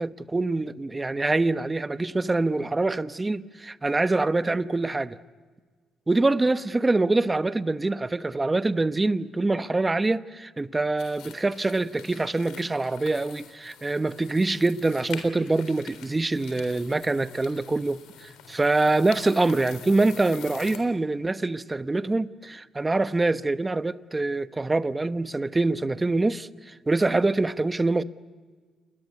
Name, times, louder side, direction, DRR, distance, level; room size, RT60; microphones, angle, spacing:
voice 1, 0.0-5.2 6.1-18.0 18.5-28.0, right 2 dB, 20° right, 0.9 m, -25 dB
sound 1, 11.0-20.8, left 8 dB, 90° left, 3.6 m, -46 dB
29.0 x 22.0 x 8.4 m
cardioid pair, 90°, 0 cm